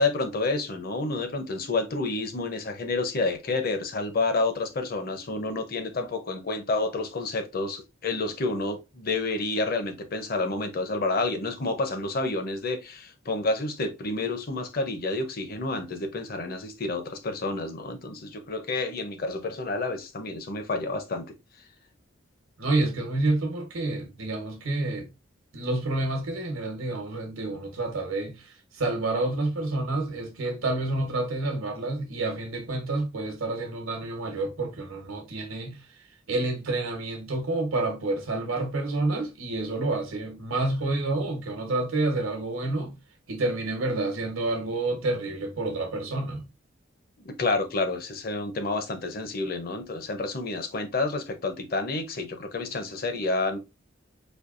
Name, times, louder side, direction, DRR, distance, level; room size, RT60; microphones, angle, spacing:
voice 1, 0.0-21.3 47.2-53.6, left 3 dB, 45° left, 0.6 m, -29 dB
voice 2, 22.6-25.1 25.5-35.8 36.3-43.0 43.3-46.4, right 2 dB, 85° right, 1.0 m, -29 dB
4.4 x 2.7 x 2.5 m
head